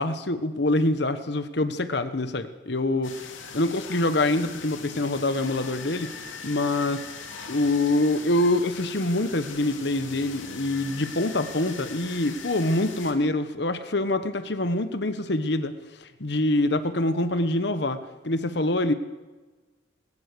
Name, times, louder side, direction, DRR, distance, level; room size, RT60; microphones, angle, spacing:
voice 1, 0.0-3.1 3.5-7.0 7.5-15.7 16.0-18.0 18.2-18.9, left 2 dB, 60° left, 11 dB, 1.2 m, -25 dB
sound 1, 3.0-13.1, left 5 dB, 85° left, 2.8 m, -41 dB
20.5 x 18.5 x 6.9 m, 1.2 s
head